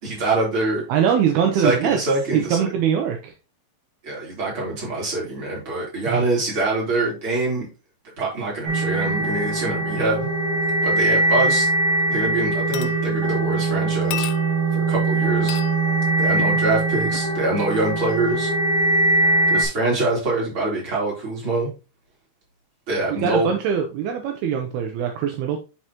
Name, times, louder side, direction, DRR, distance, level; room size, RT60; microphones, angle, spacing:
voice 1, 0.0-0.8 1.5-2.7 4.0-7.7 8.2-10.3 10.8-11.7 12.1-14.3 14.7-15.6 16.2-18.5 19.5-21.7 22.9-23.5, right 2 dB, 30° right, -4 dB, 3.6 m, -24 dB
voice 2, 0.9-2.0 2.3-3.3 6.1-6.2 23.1-25.6, right 8 dB, 80° right, 3 dB, 2.3 m, -22 dB
sound 1, 8.7-19.6, right 2 dB, 50° right, 3.0 m, -21 dB
sound 2, 11.5-11.6 12.0-12.3 12.7-13.4 14.1-14.8 15.5-15.8 17.1-17.4 18.3-18.4, left 13 dB, 80° left, 2.9 m, -34 dB
10.0 x 4.8 x 3.0 m, 0.30 s
omnidirectional pair, 5.5 m